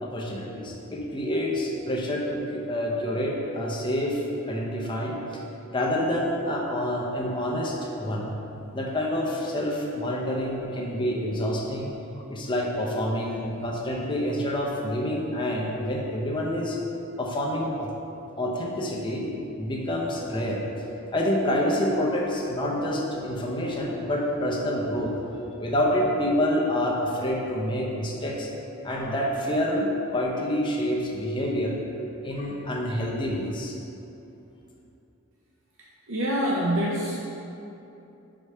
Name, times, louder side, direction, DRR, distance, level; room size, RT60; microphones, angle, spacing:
voice 1, 0.0-5.4 5.7-8.3 8.7-16.8 17.2-17.9 18.4-19.3 19.6-20.6 21.1-25.2 25.6-28.5 28.8-31.8 32.2-33.7, left 1 dB, 25° left, -2 dB, 0.8 m, -27 dB
voice 2, 36.1-37.2, equal, 70° right, -3 dB, 0.7 m, -25 dB
5.1 x 4.9 x 5.5 m, 2.8 s
head